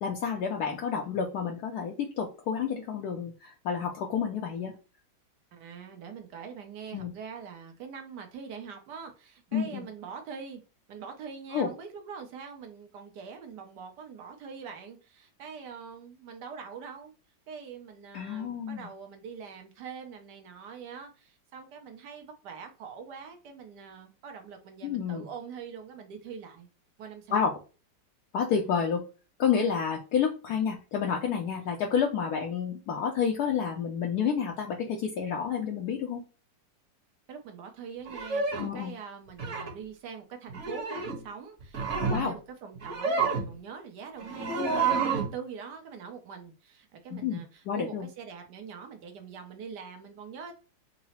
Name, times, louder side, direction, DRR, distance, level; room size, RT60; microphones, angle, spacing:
voice 1, 0.0-4.7 6.9-7.1 9.5-9.8 11.5-11.7 18.1-18.9 24.8-25.3 27.3-27.6 28.3-29.0 29.4-36.2 38.6-38.9 42.1-42.3 47.1-48.1, left 7 dB, 70° left, 1 dB, 1.0 m, -29 dB
voice 2, 5.5-10.6 10.9-17.1 17.5-26.7 27.0-27.5 28.5-28.8 37.3-50.5, right 6 dB, 70° right, 4 dB, 1.3 m, -43 dB
sound 1, 38.1-38.7 39.4-39.7 40.5-41.2 41.6-42.3 42.7-43.5 44.2-45.3, right 4 dB, 45° right, 1.3 m, -29 dB
3.8 x 2.0 x 4.1 m, 0.33 s
omnidirectional pair, 2.0 m